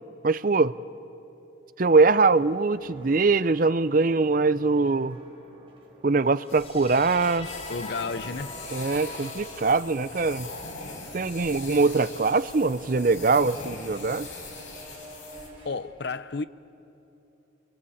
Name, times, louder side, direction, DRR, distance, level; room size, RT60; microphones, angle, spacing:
voice 1, 0.2-0.7 1.8-5.2 6.0-7.5 8.7-10.5 11.1-14.3, right 3 dB, 45° right, 0.6 m, -22 dB
sound 1, 1.9-15.8, right 1 dB, 25° right, 4.9 m, -52 dB
sound 2, 6.4-13.4, left 2 dB, 30° left, 1.4 m, -46 dB
sound 3, 6.5-15.5, left 3 dB, 85° left, 5.2 m, -41 dB
voice 2, 7.7-8.6 15.6-16.4, left 4 dB, 55° left, 0.7 m, -32 dB
29.5 x 23.0 x 8.6 m
head